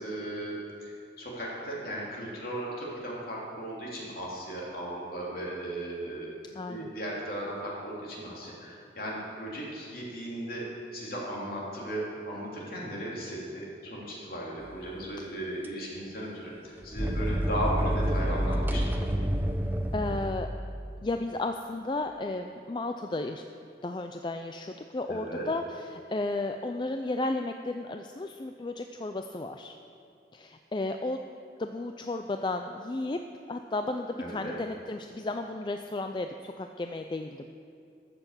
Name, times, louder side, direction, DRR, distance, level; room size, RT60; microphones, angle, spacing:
voice 1, 0.0-19.2 25.1-25.4 34.2-34.5, right 1 dB, 55° left, -4 dB, 3.0 m, -36 dB
voice 2, 6.6-6.9 19.9-20.5 21.0-23.5 23.8-29.8 30.3-31.2 31.6-33.2 33.5-37.5, left 2 dB, 25° left, 6 dB, 0.3 m, -33 dB
sound 1, 15.6-15.7 16.8-20.5, equal, 10° right, 0.6 m, -28 dB
13.5 x 6.8 x 7.2 m, 2.4 s
head